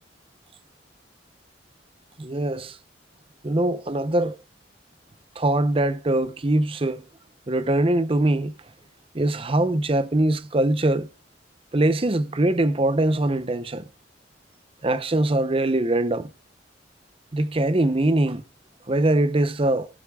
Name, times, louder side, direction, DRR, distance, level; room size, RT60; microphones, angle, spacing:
voice 1, 2.2-2.8 3.4-4.4 5.4-7.0 7.5-8.5 9.1-11.1 11.7-13.9 14.8-16.3 17.3-18.4 18.9-19.9, right 1 dB, 30° right, 0.7 m, -22 dB
17.5 x 12.0 x 2.3 m
head